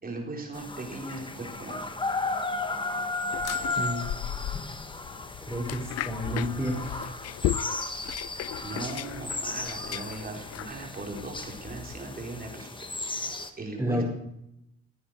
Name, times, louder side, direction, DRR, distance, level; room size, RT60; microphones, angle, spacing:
voice 1, 0.0-1.9 8.6-14.0, right 2 dB, 30° right, 0 dB, 4.3 m, -39 dB
sound 1, 0.5-13.5, left 3 dB, 15° left, 1.4 m, -35 dB
sound 2, 3.3-12.0, left 13 dB, 55° left, 0.4 m, -36 dB
voice 2, 5.4-6.8 13.8-14.0, equal, 10° right, 0 dB, 5.0 m, -30 dB
16.0 x 8.7 x 6.6 m, 0.82 s
cardioid pair, 90°, 30 cm